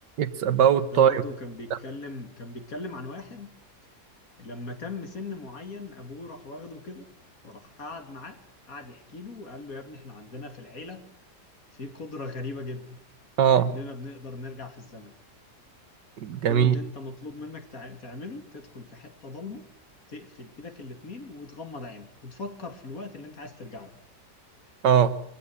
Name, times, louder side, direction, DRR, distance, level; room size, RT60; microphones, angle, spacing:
voice 1, 0.2-1.2 13.4-13.7 16.2-16.8 24.8-25.2, right 8 dB, 85° right, 14 dB, 1.9 m, -20 dB
voice 2, 0.9-3.5 4.4-7.1 7.4-8.4 8.7-11.1 11.7-13.0 13.5-15.1 16.5-19.7 20.1-23.9, left 3 dB, 55° left, 7 dB, 3.1 m, -39 dB
24.0 x 16.0 x 9.8 m, 0.74 s
omnidirectional pair, 1.8 m